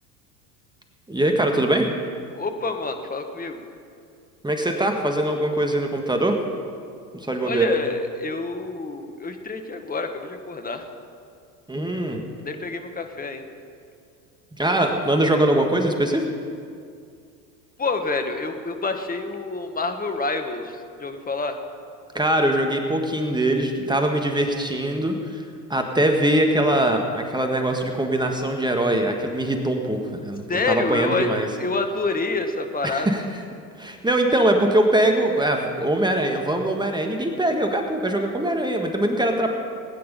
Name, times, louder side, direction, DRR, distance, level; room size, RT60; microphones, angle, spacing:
voice 1, 1.1-1.9 4.4-6.4 7.1-7.7 11.7-12.2 14.6-16.3 22.1-25.4 25.7-31.5 32.8-33.2 33.8-39.5, right 1 dB, 10° right, 3 dB, 1.5 m, -22 dB
voice 2, 2.3-3.6 7.4-10.9 12.4-13.4 17.8-21.6 30.5-31.3 31.6-33.1, left 3 dB, 15° left, 6 dB, 1.5 m, -27 dB
19.5 x 9.5 x 5.4 m, 2.3 s
hypercardioid pair, 80°, 50 cm